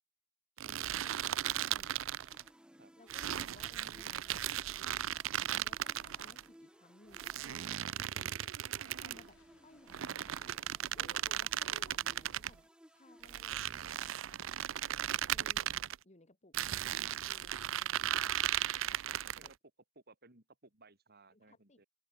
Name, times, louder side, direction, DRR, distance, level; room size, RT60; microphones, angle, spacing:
voice 1, 0.6-2.0 3.0-4.9 5.6-8.4 9.0-10.3 11.0-14.5 15.3-16.5 17.2-18.5 19.4-19.5 21.3-21.8, left 2 dB, 35° left, 2.3 m, -61 dB
sound 1, 0.6-2.5 3.1-6.4 7.1-9.3 9.9-12.5 13.2-16.0 16.5-19.5, right 11 dB, 70° right, 0.5 m, -36 dB
sound 2, 2.2-14.0, equal, 5° right, 1.9 m, -62 dB
sound 3, 7.8-12.5, left 2 dB, 70° left, 4.7 m, -70 dB
voice 2, 20.0-21.9, right 3 dB, 50° right, 4.2 m, -61 dB
open air
head